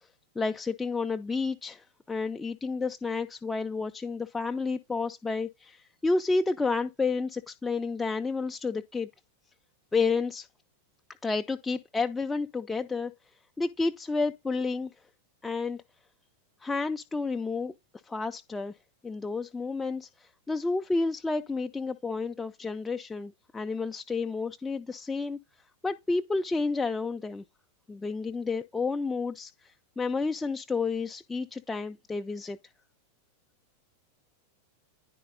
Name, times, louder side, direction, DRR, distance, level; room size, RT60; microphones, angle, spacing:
voice 1, 0.4-9.1 9.9-10.5 11.2-13.1 13.6-14.9 15.4-15.8 16.6-17.7 18.1-18.7 19.0-25.4 25.8-27.4 27.9-32.6, left 4 dB, 10° left, 0.4 m, -30 dB
9.9 x 4.6 x 3.8 m
figure-of-eight pair, 90°, 0 cm